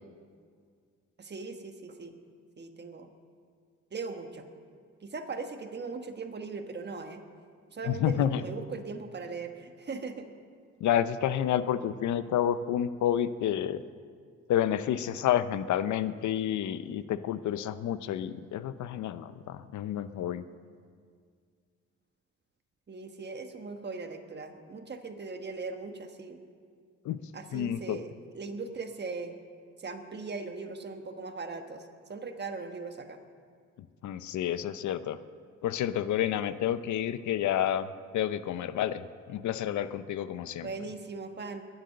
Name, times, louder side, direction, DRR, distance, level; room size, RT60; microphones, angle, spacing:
voice 1, 1.2-2.2 2.6-3.1 3.9-4.5 5.0-7.3 7.7-10.3 22.9-26.4 27.3-28.1 28.3-29.4 29.8-33.2 40.6-41.7, right 4 dB, 35° right, 6 dB, 1.4 m, -39 dB
voice 2, 7.8-8.4 10.8-13.8 14.5-20.5 27.0-27.2 27.5-28.0 34.0-35.2 35.6-40.7, left 10 dB, 70° left, 14 dB, 0.7 m, -29 dB
22.0 x 8.0 x 6.6 m, 2.1 s
cardioid pair, 90°, 30 cm